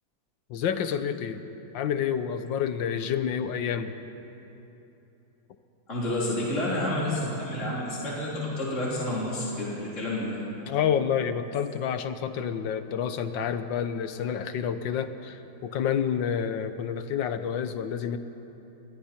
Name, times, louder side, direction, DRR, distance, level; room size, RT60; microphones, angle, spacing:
voice 1, 0.5-1.4 1.7-3.9 10.7-18.2, left 8 dB, 75° left, 10 dB, 1.6 m, -29 dB
voice 2, 5.9-10.4, left 1 dB, 40° left, -6 dB, 3.9 m, -29 dB
28.5 x 22.5 x 4.4 m, 3.0 s
omnidirectional pair, 2.1 m